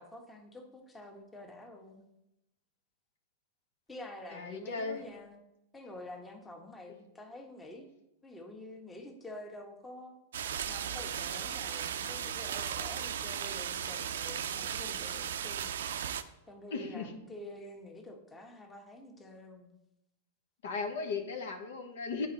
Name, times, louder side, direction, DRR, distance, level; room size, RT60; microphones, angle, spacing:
voice 1, 0.0-2.0 3.9-5.4 5.7-7.9 8.2-10.2 10.7-15.7 16.5-19.7, left 1 dB, 15° left, 3 dB, 1.1 m, -48 dB
voice 2, 4.3-5.0 16.7-17.1 20.6-22.3, left 4 dB, 70° left, 4 dB, 1.1 m, -36 dB
sound 1, 10.3-16.2, right 8 dB, 75° right, 0.5 m, -36 dB
9.2 x 4.3 x 4.0 m, 0.89 s
hypercardioid pair, 105°, 0 cm